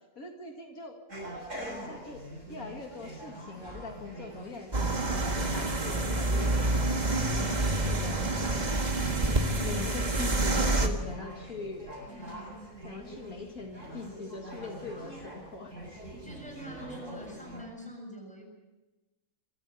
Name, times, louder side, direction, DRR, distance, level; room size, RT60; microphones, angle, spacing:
voice 1, 0.2-1.0 1.6-2.2 2.5-6.5 7.4-8.7 9.6-11.9 12.8-15.7, left 3 dB, 80° left, 3 dB, 2.6 m, -42 dB
sound 1, 1.1-17.6, right 1 dB, 60° right, 8.4 m, -44 dB
sound 2, 4.7-10.9, right 2 dB, 30° right, 1.8 m, -28 dB
voice 2, 12.1-12.5 16.2-18.4, right 1 dB, 5° left, 1 dB, 7.0 m, -45 dB
24.5 x 14.0 x 8.0 m, 1.1 s
omnidirectional pair, 1.5 m